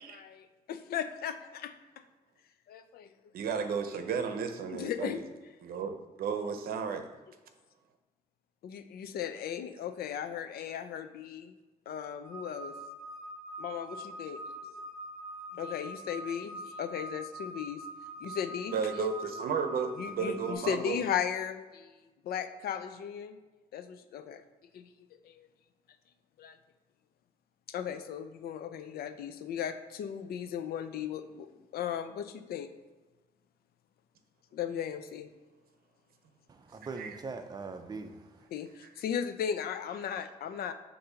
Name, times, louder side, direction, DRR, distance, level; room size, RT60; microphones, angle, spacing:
voice 1, 0.0-1.7 2.7-3.1 4.7-5.2 8.6-11.5 11.9-12.7 13.6-14.4 15.5-17.8 18.2-18.8 20.0-23.4 23.7-24.4 24.7-24.9 25.2-25.5 26.4-26.6 27.7-31.5 31.7-32.7 34.5-35.3 38.5-40.7, left 8 dB, 80° left, 10 dB, 0.5 m, -36 dB
voice 2, 3.3-5.2 5.6-7.1 18.7-21.0 37.0-37.1 38.8-38.9, right 6 dB, 75° right, 7 dB, 0.6 m, -33 dB
sound 1, 12.2-20.5, right 1 dB, ahead, 1.6 m, -44 dB
voice 3, 36.5-38.5, right 4 dB, 25° right, 7 dB, 0.4 m, -42 dB
6.7 x 2.7 x 5.6 m, 1.2 s
wide cardioid pair, 165°, 16 cm